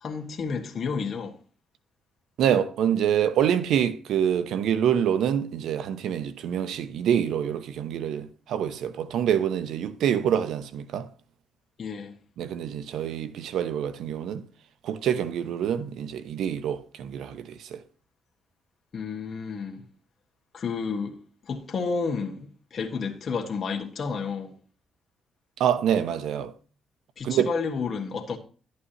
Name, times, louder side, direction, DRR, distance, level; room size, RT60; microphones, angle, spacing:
voice 1, 0.0-1.3 11.8-12.2 18.9-19.8 20.5-21.2 21.4-24.5 27.2-28.4, left 5 dB, 50° left, 1.4 m, -31 dB
voice 2, 2.4-11.1 12.4-14.4 14.8-17.8 25.6-26.5 27.2-27.5, right 9 dB, 80° right, 0.8 m, -26 dB
11.5 x 8.4 x 2.9 m
cardioid pair, 90°, 0 cm